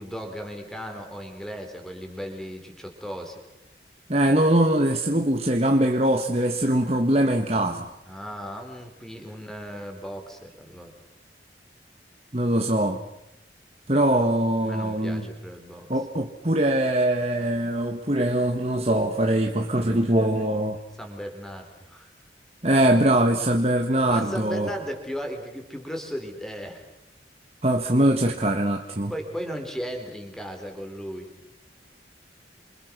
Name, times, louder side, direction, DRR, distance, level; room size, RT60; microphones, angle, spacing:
voice 1, 0.0-3.4 8.0-10.9 14.6-16.0 21.0-22.1 24.0-26.8 29.1-31.3, equal, 5° left, 4 dB, 4.2 m, -36 dB
voice 2, 4.1-7.9 12.3-13.0 13.9-15.3 15.9-20.8 22.6-24.7 27.6-29.1, right 1 dB, 35° right, 3 dB, 1.5 m, -22 dB
28.5 x 26.0 x 6.2 m, 0.92 s
head